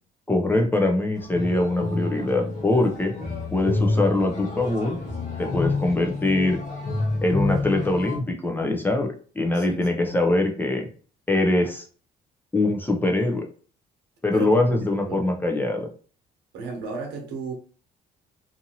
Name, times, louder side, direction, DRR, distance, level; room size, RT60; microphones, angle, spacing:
voice 1, 0.3-3.1 3.5-5.0 5.4-6.6 7.2-9.1 9.4-10.9 11.3-11.8 12.5-13.5 14.2-15.9, left 2 dB, 10° left, 0.6 m, -23 dB
sound 1, 1.2-8.2, left 3 dB, 45° left, 0.9 m, -28 dB
voice 2, 9.4-10.1 14.3-15.2 16.5-17.5, right 4 dB, 85° right, 0.9 m, -35 dB
2.7 x 2.5 x 2.8 m
cardioid pair, 110°, 17 cm